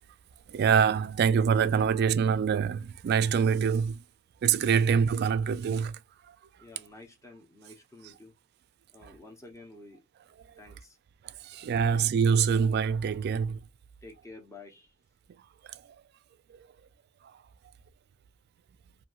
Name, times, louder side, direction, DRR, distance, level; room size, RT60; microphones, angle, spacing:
voice 1, 0.5-4.0 4.4-6.0 9.0-9.1 11.4-13.6 15.7-15.8, right 6 dB, 55° right, 0.3 m, -25 dB
voice 2, 6.6-8.3 8.9-10.0 10.6-11.0 11.8-12.1 14.0-14.9, left 2 dB, 15° left, 0.8 m, -50 dB
3.0 x 2.6 x 2.3 m
head